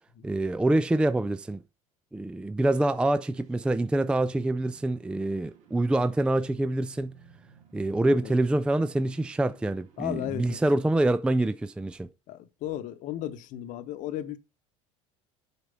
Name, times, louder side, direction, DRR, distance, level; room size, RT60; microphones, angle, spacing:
voice 1, 0.2-1.6 2.1-7.1 7.7-12.1, right 2 dB, 5° right, 0.4 m, -26 dB
sound 1, 3.1-11.2, right 6 dB, 55° right, 2.2 m, -58 dB
voice 2, 8.0-8.3 10.0-10.6 12.3-14.4, left 12 dB, 55° left, 1.0 m, -35 dB
8.1 x 4.6 x 5.4 m
supercardioid pair, 100°, 15 cm